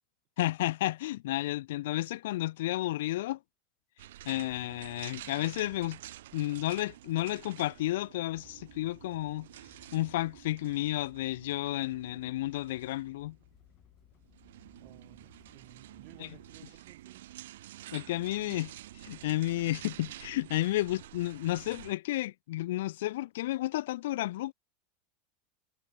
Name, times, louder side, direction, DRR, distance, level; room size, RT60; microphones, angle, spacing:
voice 1, 0.4-3.4 4.3-6.0 6.3-9.5 9.9-13.4 16.2-16.3 17.9-18.7 19.0-24.5, left 16 dB, 75° left, 0.4 m, -32 dB
sound 1, 4.0-21.9, right 14 dB, 85° right, 3.1 m, -50 dB
sound 2, 8.3-16.6, left 15 dB, 30° left, 3.1 m, -62 dB
voice 2, 14.8-17.3 18.4-18.9, right 24 dB, 40° right, 1.8 m, -58 dB
supercardioid pair, 170°, 0 cm